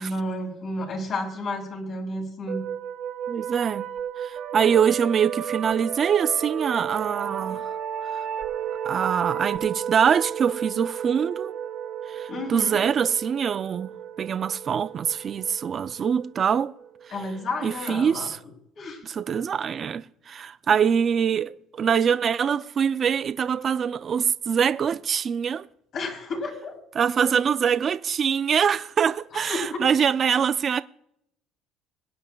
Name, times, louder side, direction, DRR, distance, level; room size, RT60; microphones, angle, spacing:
voice 1, 0.0-2.6 7.4-7.5 12.3-12.8 17.1-18.3 18.7-19.0 25.9-26.7 29.4-29.8, left 2 dB, 45° left, 3.1 m, -31 dB
sound 1, 2.5-17.8, right 9 dB, 55° right, 1.5 m, -33 dB
voice 2, 3.3-3.9 4.2-7.6 8.0-8.2 8.9-11.5 12.1-13.9 14.2-16.7 17.6-18.4 19.0-25.6 27.0-30.8, right 7 dB, 35° right, 0.3 m, -24 dB
22.5 x 9.7 x 2.2 m
cardioid pair, 145°, 0 cm